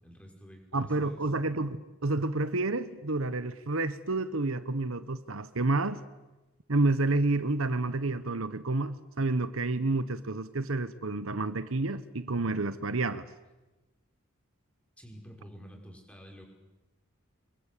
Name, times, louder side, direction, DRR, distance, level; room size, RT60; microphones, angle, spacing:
voice 1, 0.0-1.2 15.0-16.4, equal, 5° left, 5.8 m, -49 dB
voice 2, 0.7-6.0 6.7-13.3, right 2 dB, 75° right, 1.2 m, -29 dB
28.5 x 22.5 x 8.6 m
head